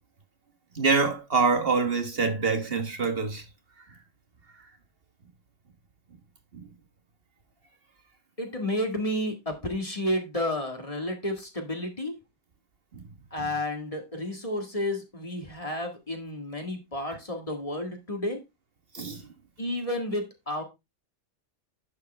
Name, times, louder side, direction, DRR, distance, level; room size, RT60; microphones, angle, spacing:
voice 1, 0.7-3.4 6.5-6.7 12.9-13.0 18.9-19.2, right 4 dB, 50° right, 1.4 m, -25 dB
voice 2, 8.4-12.2 13.3-18.4 19.6-20.6, left 1 dB, 30° left, 1.9 m, -31 dB
11.0 x 6.5 x 3.3 m
omnidirectional pair, 1.3 m